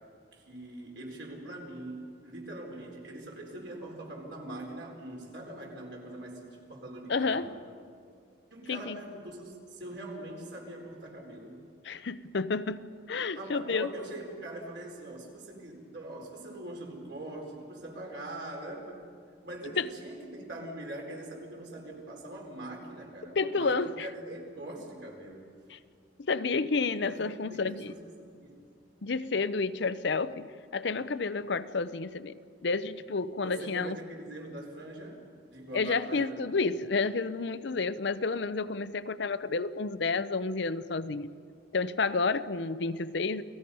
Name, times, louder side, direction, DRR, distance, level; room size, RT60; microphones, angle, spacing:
voice 1, 0.3-7.5 8.5-11.6 13.3-19.0 19.4-25.4 26.9-28.7 33.4-36.4, right 1 dB, 65° right, -1 dB, 4.3 m, -43 dB
voice 2, 7.1-7.5 8.7-9.0 11.8-13.9 19.8-19.9 23.4-24.1 25.7-25.8 26.3-27.9 29.0-30.5 30.7-32.4 32.6-34.0 35.7-41.3 41.7-43.4, left 4 dB, 60° left, 13 dB, 0.6 m, -30 dB
29.5 x 18.5 x 5.5 m, 2.2 s
head